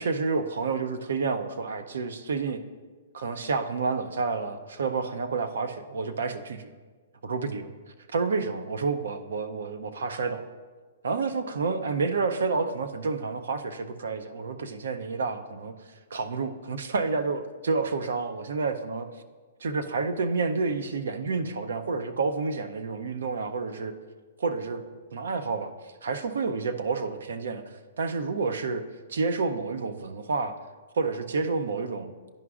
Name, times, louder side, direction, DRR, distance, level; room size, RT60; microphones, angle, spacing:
voice 1, 0.0-2.6 3.1-6.7 7.2-7.7 8.1-10.4 11.0-15.7 16.1-19.1 19.6-23.9 24.4-24.8 25.1-25.7 26.0-28.8 29.1-30.6 31.0-32.1, right 4 dB, 80° right, 10 dB, 0.5 m, -29 dB
10.5 x 5.0 x 2.4 m, 1.4 s
hypercardioid pair, 135°, 0 cm